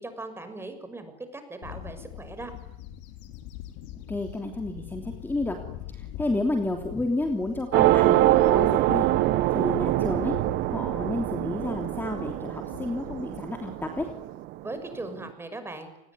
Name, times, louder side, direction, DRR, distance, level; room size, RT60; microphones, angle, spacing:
voice 1, 0.0-2.5 14.6-16.1, right 2 dB, 15° right, 9 dB, 6.3 m, -39 dB
Bird / Wind, 1.6-14.4, left 12 dB, 80° left, 2.9 m, -44 dB
voice 2, 4.1-5.6 5.9-9.1 9.5-10.3 10.7-14.1, left 2 dB, 10° left, 4 dB, 3.2 m, -30 dB
sound 1, 7.7-14.5, right 16 dB, 65° right, 1.4 m, -24 dB
29.5 x 20.5 x 9.8 m, 0.82 s
cardioid pair, 120°, 18 cm